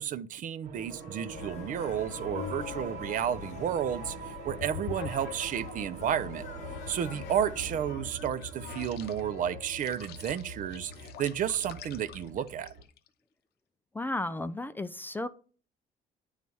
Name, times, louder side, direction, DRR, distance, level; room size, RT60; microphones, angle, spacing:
voice 1, 0.0-6.4 6.9-10.9 11.2-12.7, right 9 dB, 50° right, 0.5 m, -32 dB
sound 1, 0.6-12.8, right 4 dB, 75° right, 1.6 m, -44 dB
sound 2, 0.9-5.9 6.4-13.1, left 9 dB, 70° left, 0.6 m, -45 dB
sound 3, 1.3-7.8, left 6 dB, 45° left, 1.0 m, -45 dB
voice 2, 14.0-15.3, left 2 dB, 10° left, 0.4 m, -33 dB
9.2 x 3.2 x 5.3 m
cardioid pair, 110°, 17 cm